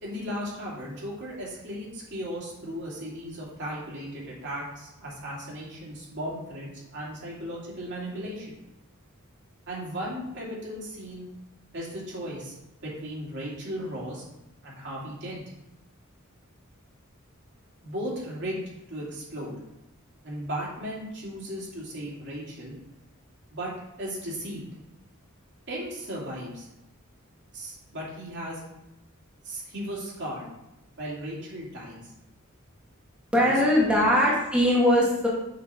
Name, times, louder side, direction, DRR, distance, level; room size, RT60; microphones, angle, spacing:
voice 1, 0.0-8.5 9.7-11.3 11.7-12.5 12.8-14.2 14.6-15.4 17.8-19.5 20.2-22.7 23.5-23.7 24.0-24.6 25.7-26.7 27.5-28.6 29.4-30.5 31.0-32.1 33.5-34.1, equal, 60° right, -5 dB, 2.7 m, -36 dB
voice 2, 33.3-35.3, left 1 dB, 5° right, -6 dB, 1.5 m, -21 dB
6.8 x 5.4 x 4.3 m, 0.92 s
head